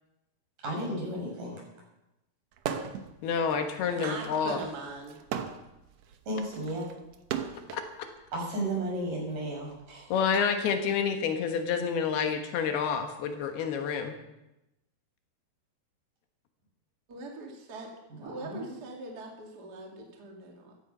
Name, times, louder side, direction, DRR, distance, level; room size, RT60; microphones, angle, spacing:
voice 1, 0.6-1.6 6.3-6.9 8.3-10.1 18.1-18.7, right 1 dB, 55° right, -3 dB, 7.7 m, -34 dB
sound 1, 2.6-3.1 3.5-7.9 8.8-10.4, right 8 dB, 90° right, 1.4 m, -37 dB
voice 2, 3.2-4.6 7.7-7.8 10.1-14.2, left 6 dB, 75° left, 5 dB, 3.2 m, -28 dB
voice 3, 4.0-5.2 17.1-17.9 18.2-20.8, right 3 dB, 30° right, 0 dB, 2.2 m, -41 dB
15.5 x 14.0 x 5.4 m, 0.95 s
omnidirectional pair, 4.6 m